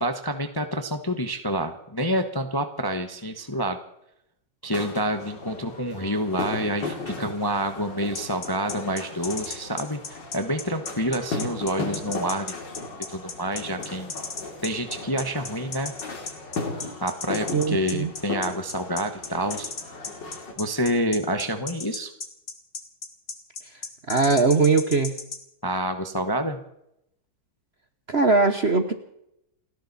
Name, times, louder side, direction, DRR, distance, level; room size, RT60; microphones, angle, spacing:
voice 1, 0.0-3.8 4.6-12.7 13.1-14.1 14.6-15.9 17.0-19.7 20.6-22.1 25.6-26.6, equal, 15° left, 7 dB, 0.8 m, -28 dB
sound 1, 4.7-20.5, left 3 dB, 60° left, 3.2 m, -36 dB
sound 2, 8.1-25.4, left 4 dB, 35° left, 1.8 m, -35 dB
voice 2, 17.5-18.1 24.1-25.1 28.1-28.9, right 4 dB, 40° right, 8 dB, 1.0 m, -20 dB
30.0 x 11.5 x 4.1 m, 0.80 s
omnidirectional pair, 2.2 m